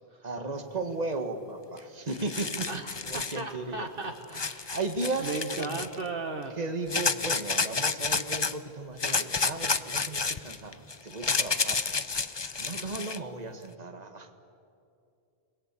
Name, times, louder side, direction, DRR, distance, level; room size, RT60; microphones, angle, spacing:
voice 1, 0.2-2.7 3.0-3.9 4.7-5.8 6.5-11.8 12.6-14.3, right 3 dB, 40° right, 6 dB, 1.8 m, -35 dB
sound 1, 1.8-1.9 2.1-3.4 4.3-6.0 6.9-8.5 9.0-13.2, left 4 dB, 30° left, 0.7 m, -30 dB
voice 2, 2.7-4.8 5.2-6.6, right 3 dB, 60° right, 5 dB, 1.6 m, -36 dB
29.5 x 21.0 x 8.5 m, 2.5 s
omnidirectional pair, 1.0 m